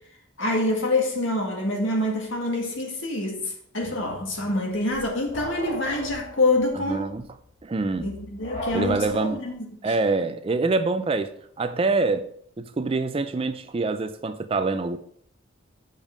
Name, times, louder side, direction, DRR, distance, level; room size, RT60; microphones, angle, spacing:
voice 1, 0.4-7.1 8.0-9.9, left 2 dB, 60° left, 1.8 m, -26 dB
sound 1, 3.8-9.5, left 1 dB, 40° left, 1.4 m, -38 dB
voice 2, 6.9-7.3 7.6-8.1 8.7-9.4 9.8-12.3 12.6-15.0, right 3 dB, 25° right, 0.3 m, -25 dB
7.1 x 5.4 x 5.0 m
head